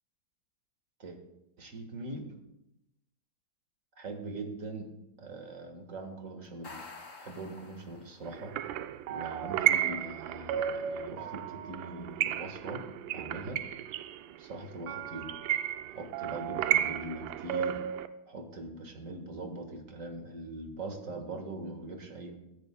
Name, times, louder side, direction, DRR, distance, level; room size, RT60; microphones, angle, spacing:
voice 1, 1.6-2.3 4.0-4.9 5.2-6.7 7.2-8.5 9.1-12.8 13.1-13.6 14.4-15.3 15.9-17.8 18.3-22.4, right 2 dB, 45° right, 4 dB, 1.8 m, -41 dB
sound 1, 6.4-8.4, left 3 dB, 35° left, 1.6 m, -49 dB
sound 2, 8.3-18.1, right 10 dB, 85° right, 1.3 m, -33 dB
21.5 x 10.5 x 2.2 m, 0.89 s
omnidirectional pair, 2.1 m